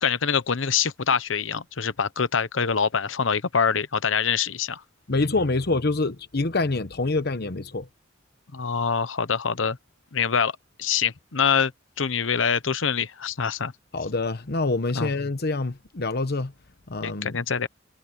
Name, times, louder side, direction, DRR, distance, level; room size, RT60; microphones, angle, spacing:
voice 1, 0.0-4.8 8.5-9.8 10.1-11.7 12.0-13.7 14.9-15.1 17.0-17.7, left 6 dB, 90° left, 0.9 m, -25 dB
voice 2, 5.1-7.9 13.9-16.5 16.9-17.3, left 3 dB, 55° left, 1.0 m, -26 dB
head